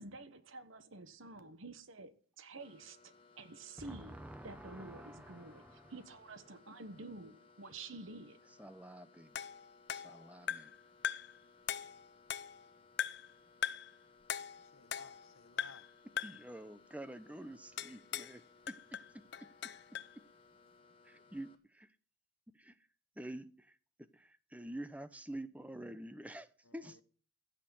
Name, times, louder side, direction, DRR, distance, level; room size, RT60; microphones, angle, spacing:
voice 1, 0.0-4.2 4.4-8.4, right 3 dB, 70° right, 1.2 m, -50 dB
sound 1, 2.6-21.6, left 4 dB, 25° left, 1.4 m, -64 dB
voice 2, 3.8-5.9 8.6-9.4 9.9-10.7 16.2-18.8 21.0-22.0 22.5-22.9 23.2-27.0, right 1 dB, 5° right, 0.7 m, -48 dB
sound 2, 9.4-10.8 11.0-11.4 11.7-12.7 13.0-13.3 13.6-13.9 14.3-15.3 15.6-15.9 16.2-16.5 17.8-18.4 18.7-20.1, left 9 dB, 55° left, 0.6 m, -40 dB
voice 3, 14.6-16.0 26.6-27.0, left 4 dB, 80° left, 1.1 m, -58 dB
15.5 x 6.6 x 7.8 m
head